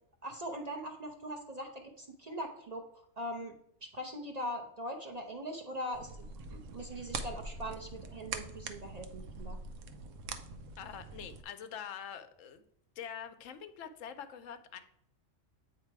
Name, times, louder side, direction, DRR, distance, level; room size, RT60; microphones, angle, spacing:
voice 1, 0.2-3.5 3.8-9.6, equal, 40° right, 2 dB, 0.6 m, -41 dB
sound 1, 5.9-11.4, right 4 dB, 90° right, 1.0 m, -43 dB
voice 2, 10.8-12.6 13.0-14.8, left 8 dB, 85° left, 9 dB, 1.0 m, -45 dB
8.3 x 2.9 x 4.5 m, 0.71 s
omnidirectional pair, 1.3 m